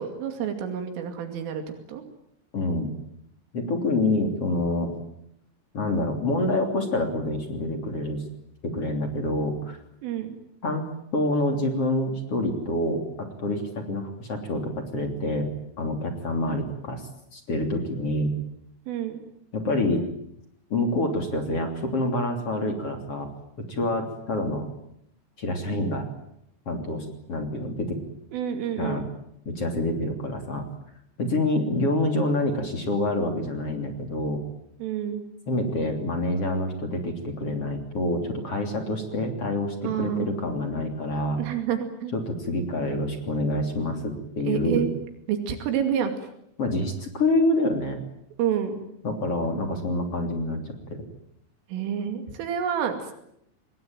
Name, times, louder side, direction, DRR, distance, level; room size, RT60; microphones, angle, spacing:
voice 1, 0.0-1.6 1.9-2.0 10.0-10.4 18.9-19.2 28.3-29.0 34.8-35.2 39.8-40.3 41.4-42.1 44.5-44.9 45.3-46.1 48.4-48.8 51.7-53.2, right 9 dB, 85° right, 6 dB, 5.0 m, -28 dB
voice 2, 2.5-2.9 3.5-4.9 5.7-8.2 8.6-9.8 10.6-10.8 11.1-15.5 15.8-17.0 17.3-18.3 19.5-20.0 20.7-23.3 23.7-24.7 25.4-26.1 26.7-28.0 28.8-29.1 29.5-30.6 31.2-34.4 35.5-41.4 42.1-44.9 46.6-48.0 49.0-51.0, left 1 dB, 35° left, 5 dB, 3.5 m, -27 dB
26.5 x 20.5 x 9.2 m, 0.75 s
omnidirectional pair, 5.6 m